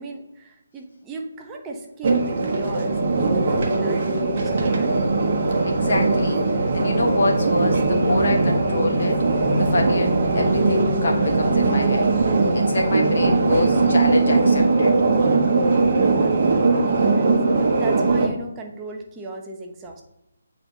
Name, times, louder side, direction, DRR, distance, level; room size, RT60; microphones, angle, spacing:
voice 1, 0.0-5.0 16.7-20.0, right 2 dB, 15° right, 1 dB, 0.8 m, -36 dB
sound 1, 2.0-18.3, right 3 dB, 45° right, 1.2 m, -20 dB
voice 2, 5.6-9.2 9.6-12.1 12.5-15.0, left 2 dB, 55° left, 2 dB, 1.3 m, -26 dB
8.6 x 4.2 x 2.8 m, 0.90 s
figure-of-eight pair, 150°, 0 cm